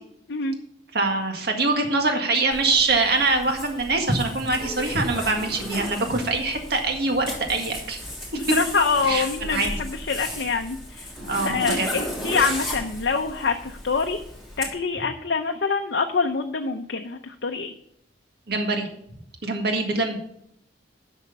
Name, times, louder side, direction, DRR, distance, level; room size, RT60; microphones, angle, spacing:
voice 1, 0.9-8.0 8.3-8.5 9.1-9.7 11.3-11.9 18.5-18.9 19.4-20.2, right 3 dB, 55° right, 3 dB, 1.8 m, -24 dB
Zipper (clothing), 2.5-14.7, left 1 dB, ahead, 3.1 m, -35 dB
voice 2, 8.3-11.1 11.4-14.2 14.6-17.7, left 4 dB, 65° left, 3 dB, 0.7 m, -25 dB
10.5 x 6.5 x 5.4 m, 0.71 s
head